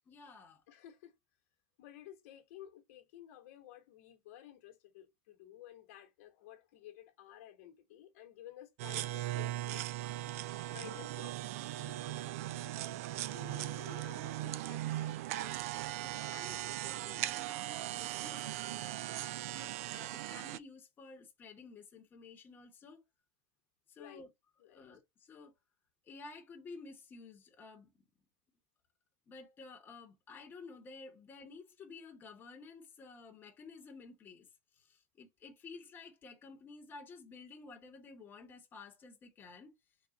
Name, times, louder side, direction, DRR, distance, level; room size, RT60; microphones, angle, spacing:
voice 1, 0.1-0.6 11.7-12.1 12.6-13.2 16.0-19.1 19.5-23.0 23.9-24.3 24.7-25.5 26.0-27.9 29.3-34.5 34.7-39.7, left 4 dB, 25° left, 1.0 m, -53 dB
voice 2, 0.7-1.2 1.8-9.8 10.6-12.2 12.6-12.8 13.2-15.6 24.0-24.2 24.6-24.8, left 12 dB, 70° left, 1.1 m, -54 dB
sound 1, 8.8-20.6, right 15 dB, 70° right, 0.4 m, -39 dB
3.7 x 2.4 x 4.0 m
supercardioid pair, 135°, 8 cm